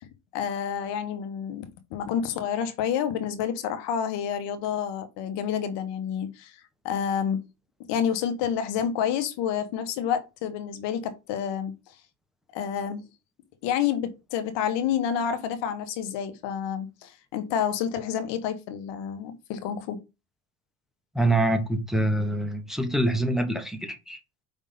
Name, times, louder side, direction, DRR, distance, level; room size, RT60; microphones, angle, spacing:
voice 1, 0.3-6.6 6.8-7.4 7.9-11.7 12.5-13.0 13.6-20.0, left 8 dB, 75° left, 1.2 m, -29 dB
voice 2, 21.1-24.2, right 1 dB, ahead, 1.1 m, -25 dB
5.3 x 3.6 x 5.3 m
cardioid pair, 100°, 43 cm